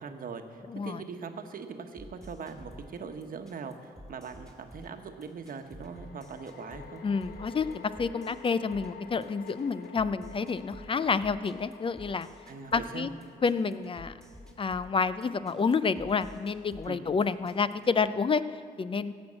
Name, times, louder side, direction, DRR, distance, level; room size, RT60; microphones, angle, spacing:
voice 1, 0.0-7.0 12.5-13.1 16.8-17.2, right 5 dB, 60° right, 6 dB, 1.1 m, -41 dB
voice 2, 0.7-1.0 7.0-12.3 12.7-13.1 13.4-14.1 14.6-18.4 18.8-19.1, left 5 dB, 35° left, 14 dB, 0.5 m, -29 dB
sound 1, 2.0-18.0, equal, 5° left, 2.2 m, -51 dB
sound 2, 2.9-3.0 5.8-17.2, left 7 dB, 70° left, 0.9 m, -51 dB
16.0 x 6.3 x 7.5 m, 2.2 s
cardioid pair, 85°, 16 cm